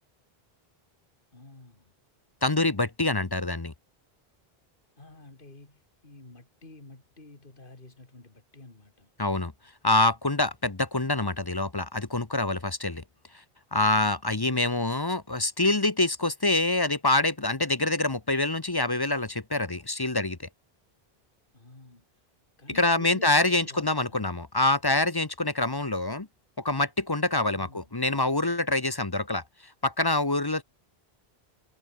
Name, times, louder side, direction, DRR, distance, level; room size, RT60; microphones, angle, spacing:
voice 1, 1.3-1.9 5.0-9.1 21.5-22.3 22.6-24.3 27.5-27.9, left 2 dB, 55° left, 3.3 m, -50 dB
voice 2, 2.4-3.7 9.2-9.5 9.8-13.0 13.7-20.4 22.7-26.3 26.6-29.4 29.8-30.6, left 2 dB, 25° left, 1.0 m, -25 dB
omnidirectional pair, 1.1 m